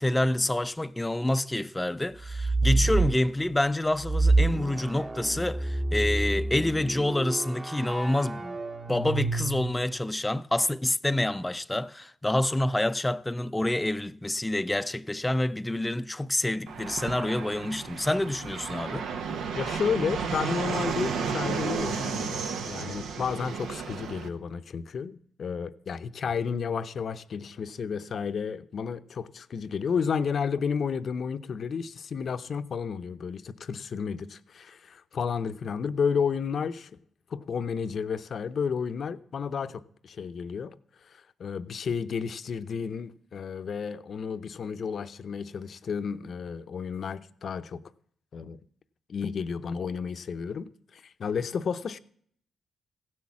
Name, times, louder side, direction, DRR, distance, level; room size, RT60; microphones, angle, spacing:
voice 1, 0.0-8.6 8.9-19.1, left 1 dB, 15° left, 0.5 m, -27 dB
sound 1, 2.2-3.2 4.0-10.0, right 3 dB, 30° right, 1.3 m, -28 dB
Fixed-wing aircraft airplane, 16.7-24.3, right 6 dB, 85° right, 1.0 m, -33 dB
voice 2, 19.5-36.9 37.3-40.7 41.0-47.8 48.3-48.6 49.1-52.0, left 6 dB, 60° left, 0.7 m, -32 dB
15.5 x 6.3 x 7.2 m
cardioid pair, 85°, 0 cm